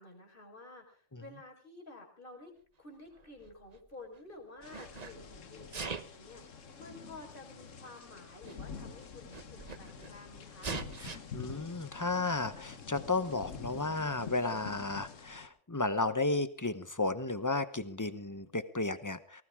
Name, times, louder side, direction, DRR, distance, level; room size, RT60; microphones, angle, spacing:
voice 1, 0.0-2.5 2.8-10.7, left 2 dB, 45° left, 2 dB, 4.9 m, -51 dB
Sneeze, 3.1-4.2 4.6-5.1 5.6-6.2 7.2-7.3 8.2-8.3 8.4-8.6 8.9-10.1 10.6-11.2, right 4 dB, 35° right, 1.1 m, -41 dB
sound 1, 4.6-15.5, left 6 dB, 75° left, 1.6 m, -47 dB
voice 2, 11.0-19.4, left 3 dB, 15° left, 12 dB, 0.9 m, -33 dB
20.0 x 18.5 x 3.7 m, 0.40 s
omnidirectional pair, 1.3 m